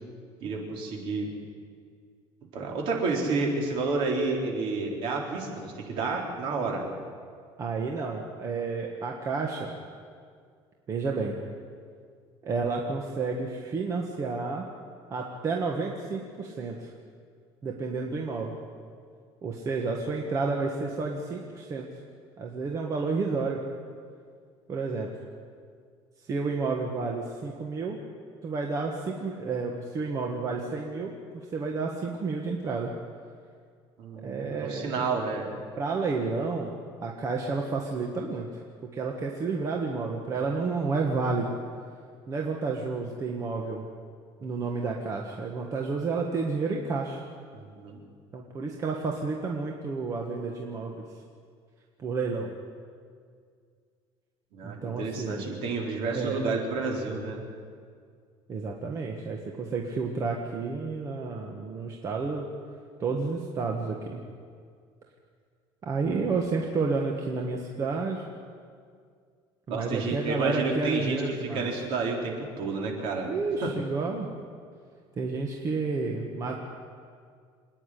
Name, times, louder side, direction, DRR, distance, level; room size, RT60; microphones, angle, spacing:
voice 1, 0.4-1.3 2.5-6.8 34.0-35.5 47.5-48.0 54.5-57.4 69.7-73.3 73.6-73.7, right 3 dB, 55° right, -1 dB, 4.1 m, -30 dB
voice 2, 7.6-9.7 10.9-11.4 12.4-14.7 15.1-16.9 17.6-18.6 19.4-21.9 22.4-23.6 24.7-25.1 26.3-28.0 28.4-31.1 31.5-32.9 34.2-35.0 35.8-36.7 37.0-38.6 38.9-41.6 42.3-43.8 44.4-47.2 48.3-51.0 52.0-52.5 54.6-55.5 56.1-56.4 58.5-62.5 63.0-64.2 65.8-68.2 69.7-71.7 73.3-74.3 75.2-76.5, right 4 dB, 30° right, 0 dB, 1.5 m, -30 dB
26.5 x 9.9 x 9.9 m, 2.1 s
cardioid pair, 165°, 11 cm